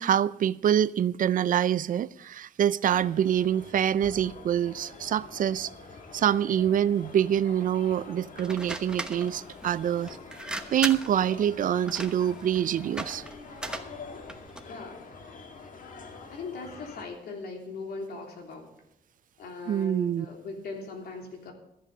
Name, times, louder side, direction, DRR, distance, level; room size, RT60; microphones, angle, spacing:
voice 1, 0.0-5.7 6.1-10.2 10.7-13.2 19.7-20.3, right 10 dB, 60° right, 0.4 m, -25 dB
sound 1, 2.9-17.1, left 4 dB, 55° left, 1.5 m, -46 dB
sound 2, 8.4-14.7, right 1 dB, 5° right, 1.1 m, -38 dB
voice 2, 14.6-15.1 16.3-18.7 19.4-21.5, left 4 dB, 80° left, 3.3 m, -39 dB
14.0 x 7.6 x 6.6 m
cardioid pair, 115°, 16 cm